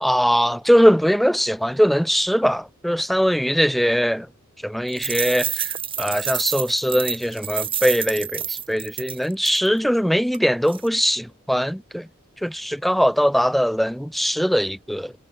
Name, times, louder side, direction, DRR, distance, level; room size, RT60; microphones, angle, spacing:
voice 1, 0.0-4.3 4.6-12.1 12.4-15.1, equal, ahead, 1.2 m, -21 dB
sound 1, 4.9-9.7 10.3-10.4 10.6-10.9, right 8 dB, 25° right, 1.9 m, -28 dB
head